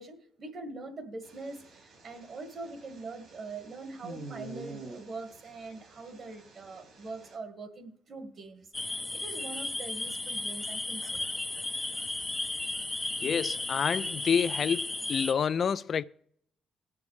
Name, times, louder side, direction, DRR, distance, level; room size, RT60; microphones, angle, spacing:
voice 1, 0.0-11.3, right 3 dB, 50° right, 1.6 m, -43 dB
sound 1, 1.2-7.4, right 2 dB, 70° right, 3.1 m, -48 dB
sound 2, 8.7-15.3, left 2 dB, 15° left, 0.6 m, -34 dB
voice 2, 13.2-16.0, left 7 dB, 50° left, 0.4 m, -28 dB
20.0 x 7.1 x 3.2 m
cardioid pair, 90°, 0 cm